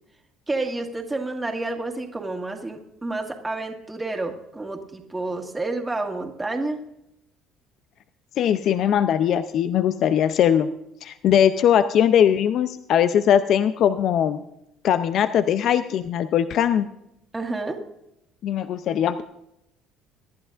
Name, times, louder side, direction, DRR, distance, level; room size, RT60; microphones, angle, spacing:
voice 1, 0.5-6.8 17.3-17.8, right 2 dB, 15° right, 2 dB, 1.9 m, -29 dB
voice 2, 8.4-10.7 11.0-14.4 14.8-16.9 18.4-19.2, left 9 dB, 60° left, 12 dB, 0.6 m, -20 dB
24.5 x 11.0 x 2.5 m, 0.81 s
supercardioid pair, 80°, 0 cm